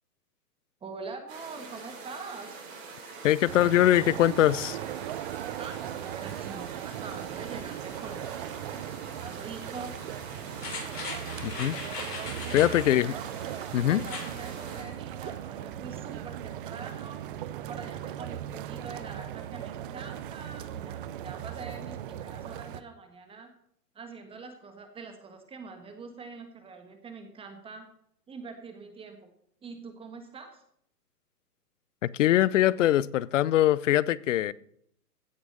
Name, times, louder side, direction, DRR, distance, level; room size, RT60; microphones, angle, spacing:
voice 1, 0.8-2.6 5.6-8.3 9.2-9.9 12.4-13.2 13.8-17.2 17.7-23.5 23.9-27.9 28.3-29.3 29.6-30.6, right 4 dB, 10° right, 7 dB, 1.4 m, -44 dB
sound 1, 1.3-14.8, right 4 dB, 55° right, 5.6 m, -44 dB
voice 2, 3.2-4.8 11.4-11.8 12.5-13.1 13.7-14.0 32.0-34.5, left 13 dB, 50° left, 21 dB, 0.7 m, -22 dB
sound 2, 3.5-22.8, right 11 dB, 35° right, 0.7 m, -38 dB
sound 3, 10.6-12.9 13.9-14.3 14.7-14.8, left 3 dB, 75° left, 6.7 m, -38 dB
16.0 x 6.1 x 6.5 m, 0.69 s
hypercardioid pair, 135°, 47 cm